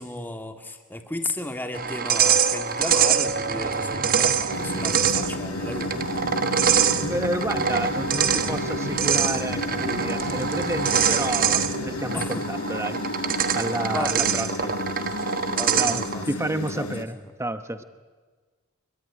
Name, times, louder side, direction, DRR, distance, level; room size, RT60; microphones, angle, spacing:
voice 1, 0.0-6.2 12.1-12.5 13.9-14.5 15.5-16.2 16.7-17.3, left 1 dB, 10° left, 5 dB, 2.0 m, -34 dB
sound 1, 1.7-16.2, right 7 dB, 40° right, 1.3 m, -24 dB
sound 2, 3.2-12.0, right 1 dB, 60° right, 2.6 m, -36 dB
sound 3, 4.5-17.0, left 3 dB, 90° left, 1.8 m, -32 dB
voice 2, 7.0-14.8 15.8-17.8, right 1 dB, 10° right, 10 dB, 1.0 m, -30 dB
25.5 x 23.0 x 9.8 m, 1.4 s
head